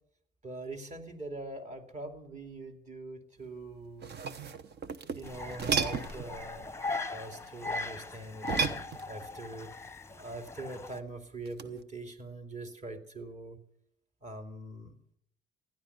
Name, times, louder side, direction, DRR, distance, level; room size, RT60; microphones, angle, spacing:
voice 1, 0.4-4.1 5.2-6.7 7.1-9.7 10.1-13.6 14.2-14.9, right 2 dB, 35° right, 5 dB, 2.6 m, -43 dB
sound 1, 3.8-6.3 8.4-9.4 11.5-11.8, right 6 dB, 55° right, 1.1 m, -34 dB
sound 2, 5.2-11.0, left 3 dB, 15° left, 0.8 m, -39 dB
16.0 x 11.0 x 8.1 m, 0.71 s
cardioid pair, 90°, 20 cm